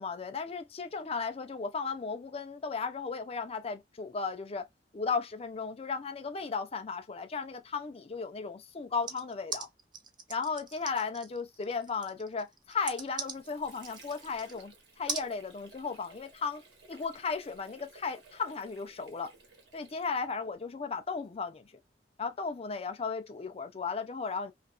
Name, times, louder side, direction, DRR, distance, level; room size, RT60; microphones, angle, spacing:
voice 1, 0.0-4.7 4.9-9.7 10.3-16.6 16.9-19.3 19.7-21.7 22.2-24.5, left 5 dB, 35° left, 0.5 m, -35 dB
sound 1, 9.1-14.6 15.1-15.3, right 5 dB, 25° right, 0.4 m, -40 dB
Water / Sink (filling or washing), 12.9-20.5, right 3 dB, 65° right, 1.0 m, -57 dB
2.8 x 2.4 x 2.4 m
head